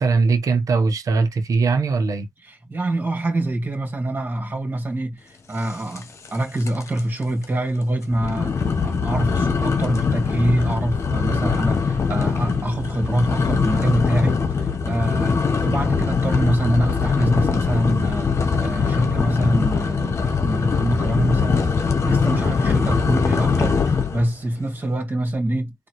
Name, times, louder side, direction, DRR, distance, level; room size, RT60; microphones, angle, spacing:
voice 1, 0.0-2.3, right 4 dB, 60° right, 1.2 m, -20 dB
voice 2, 2.4-8.5 8.8-25.7, right 1 dB, 30° right, 2.4 m, -25 dB
sound 1, 6.0-6.4 6.6-7.0 7.4-7.5 8.1-24.3, left 5 dB, 45° left, 1.2 m, -22 dB
4.0 x 2.8 x 4.7 m
cardioid pair, 90°, 7 cm